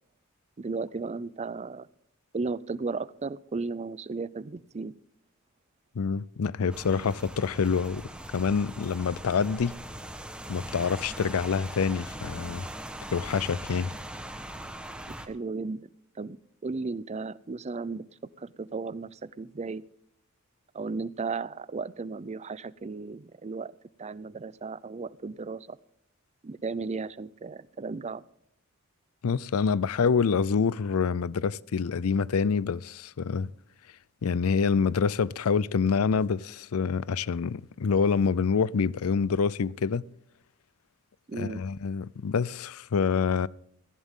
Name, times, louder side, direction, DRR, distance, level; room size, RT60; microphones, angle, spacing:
voice 1, 0.6-1.9 2.3-4.9 15.3-15.8 16.2-16.4 16.6-18.0 18.4-19.8 20.7-23.7 24.0-25.8 26.4-28.2 41.3-41.6, right 4 dB, 30° right, 0.4 m, -35 dB
voice 2, 6.0-9.8 10.5-12.7 13.1-13.9 29.2-33.5 34.2-40.0 41.4-43.5, left 5 dB, 85° left, 0.5 m, -26 dB
Rain, 6.7-15.3, right 1 dB, 5° right, 1.2 m, -40 dB
18.0 x 14.5 x 3.7 m
head